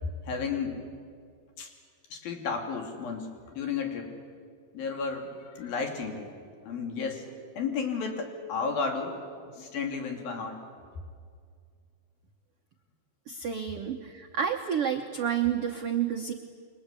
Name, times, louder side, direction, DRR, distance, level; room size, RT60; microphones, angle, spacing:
voice 1, 0.0-0.8 1.6-1.7 2.1-4.1 4.7-6.3 6.6-7.3 7.6-9.2 9.6-10.6, left 5 dB, 65° left, 4 dB, 4.6 m, -33 dB
voice 2, 13.3-16.3, right 8 dB, 85° right, 4 dB, 1.3 m, -30 dB
29.0 x 24.0 x 8.4 m, 2.2 s
omnidirectional pair, 4.5 m